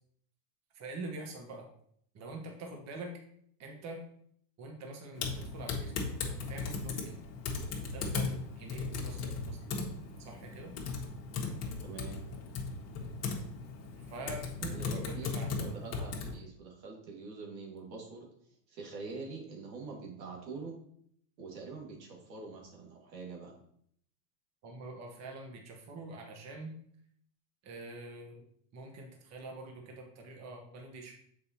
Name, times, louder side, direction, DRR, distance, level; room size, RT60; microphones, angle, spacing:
voice 1, 0.7-1.7 2.1-3.1 3.6-4.0 4.6-6.1 6.5-7.2 7.9-9.6 10.2-10.7 14.1-14.4 14.9-15.7 24.6-26.7 27.6-28.4 28.7-31.1, right 2 dB, 30° right, 1 dB, 1.2 m, -45 dB
Typing, 5.2-16.3, left 4 dB, 30° left, 1.3 m, -37 dB
voice 2, 11.8-12.2 14.6-18.3 18.7-20.8 21.4-23.6, right 4 dB, 85° right, -2 dB, 2.1 m, -45 dB
6.8 x 4.8 x 2.9 m, 0.67 s
hypercardioid pair, 110°, 50 cm